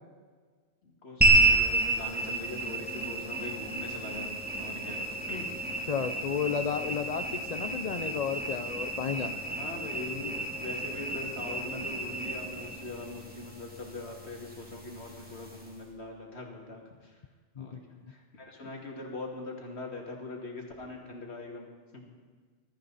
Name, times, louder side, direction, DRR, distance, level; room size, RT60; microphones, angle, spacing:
voice 1, 0.8-5.6 9.5-17.2 17.6-22.0, left 2 dB, 70° left, 0 dB, 2.6 m, -42 dB
sound 1, 1.2-15.8, right 2 dB, 10° right, 2.6 m, -31 dB
voice 2, 5.9-7.2 7.5-9.4 17.6-18.1, left 7 dB, 45° left, 9 dB, 0.7 m, -32 dB
21.0 x 13.0 x 4.1 m, 1.5 s
omnidirectional pair, 1.2 m